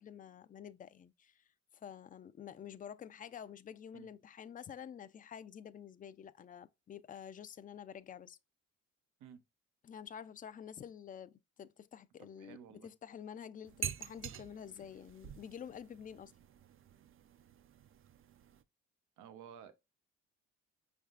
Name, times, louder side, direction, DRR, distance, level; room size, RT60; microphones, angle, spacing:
voice 1, 0.0-1.4 1.7-8.4 9.8-16.3, left 8 dB, 30° left, 0.3 m, -49 dB
voice 2, 12.2-12.9 19.2-19.7, right 8 dB, 85° right, 0.7 m, -53 dB
sound 1, 13.6-18.6, right 8 dB, 45° right, 0.5 m, -47 dB
5.3 x 3.4 x 2.4 m
cardioid pair, 90°, 30 cm